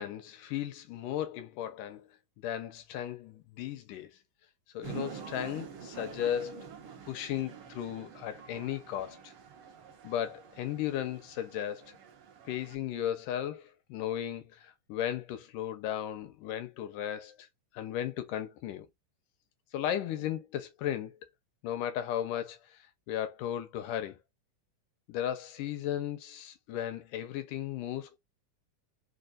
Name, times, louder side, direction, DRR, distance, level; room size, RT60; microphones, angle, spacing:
voice 1, 0.0-2.1 2.4-4.1 4.7-6.7 7.1-9.3 10.0-11.9 12.5-17.5 17.7-18.9 19.7-21.2 21.6-22.8 23.1-24.2 25.1-28.2, left 11 dB, 80° left, 2.2 m, -35 dB
sound 1, 4.8-12.8, right 7 dB, 75° right, 1.3 m, -47 dB
5.3 x 2.4 x 2.4 m
omnidirectional pair, 3.8 m